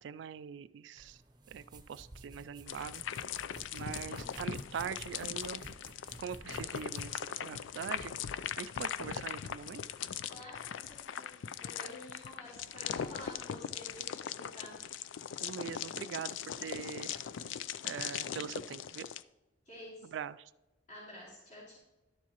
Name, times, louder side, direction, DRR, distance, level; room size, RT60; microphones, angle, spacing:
voice 1, 0.0-1.2 1.5-3.0 3.7-5.6 6.2-8.1 8.6-9.8 15.4-17.5 17.8-19.1 20.0-20.5, right 7 dB, 70° right, 15 dB, 0.3 m, -42 dB
sound 1, 1.0-8.1, right 2 dB, 25° right, 0.8 m, -53 dB
sound 2, 2.7-19.2, left 8 dB, 85° left, 0.4 m, -40 dB
voice 2, 3.9-4.4 10.3-14.8 19.6-20.1 20.9-21.8, left 1 dB, 40° left, -6 dB, 3.4 m, -50 dB
11.5 x 7.2 x 2.9 m, 1.0 s
head